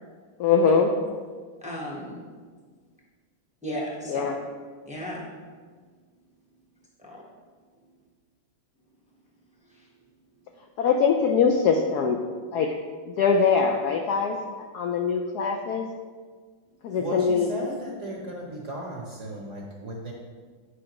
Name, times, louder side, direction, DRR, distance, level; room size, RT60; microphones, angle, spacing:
voice 1, 0.4-0.9 4.1-4.4 10.8-12.2 12.5-12.7 13.1-14.4 14.7-15.9 16.8-17.5, left 5 dB, 75° left, 3 dB, 0.9 m, -22 dB
voice 2, 1.6-2.2 3.6-4.3 4.9-5.3 7.0-7.2 9.7-9.8, equal, 5° right, -4 dB, 0.5 m, -35 dB
voice 3, 16.9-20.1, right 1 dB, 50° right, -2 dB, 0.9 m, -35 dB
9.7 x 5.1 x 2.9 m, 1.5 s
omnidirectional pair, 2.2 m